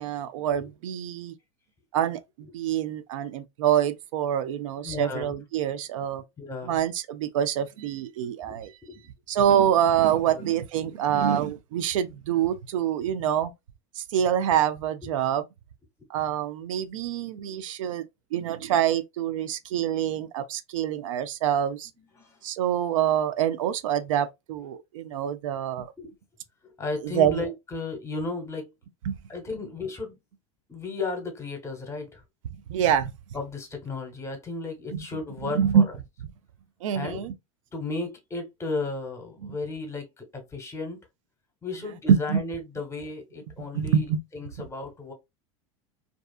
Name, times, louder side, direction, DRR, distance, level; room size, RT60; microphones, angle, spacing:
voice 1, 0.0-1.3 1.9-6.2 6.6-8.7 9.3-13.5 14.0-15.4 16.1-18.0 18.3-21.9 22.4-25.9 27.0-27.4 29.1-29.2 32.7-33.1 34.9-35.0 35.4-35.9 36.8-37.3 42.1-42.4 43.7-44.2, right 9 dB, 85° right, 0.4 m, -25 dB
voice 2, 4.8-5.3 6.4-6.8 8.5-9.0 10.3-10.5 15.0-15.1 22.0-22.4 26.0-26.1 26.8-28.7 29.3-30.2 30.7-32.2 33.3-35.8 36.9-37.2 37.7-41.0 41.6-45.1, left 3 dB, 15° left, 1.0 m, -34 dB
2.6 x 2.3 x 2.3 m
supercardioid pair, 105°, 16 cm